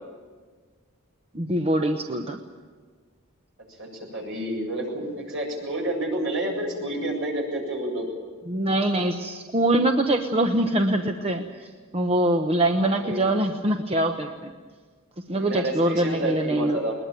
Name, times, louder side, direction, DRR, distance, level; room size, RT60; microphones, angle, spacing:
voice 1, 1.3-2.4 8.5-14.5 15.3-16.8, right 1 dB, 30° right, 5 dB, 1.0 m, -24 dB
voice 2, 3.8-8.1 12.6-13.3 15.3-16.9, right 1 dB, 60° right, 1 dB, 7.5 m, -30 dB
21.0 x 20.5 x 9.1 m, 1.5 s
head